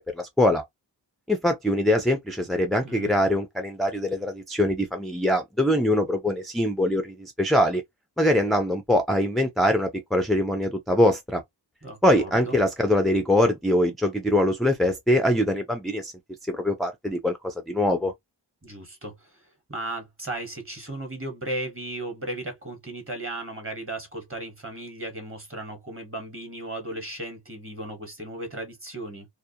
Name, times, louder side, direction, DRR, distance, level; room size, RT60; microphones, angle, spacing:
voice 1, 0.1-0.6 1.3-7.8 8.2-11.4 12.0-16.1 16.5-18.1, left 1 dB, ahead, 0.3 m, -23 dB
voice 2, 11.8-12.6 18.6-29.3, right 1 dB, 30° right, 1.2 m, -36 dB
2.4 x 2.1 x 2.7 m
wide cardioid pair, 70°, 46 cm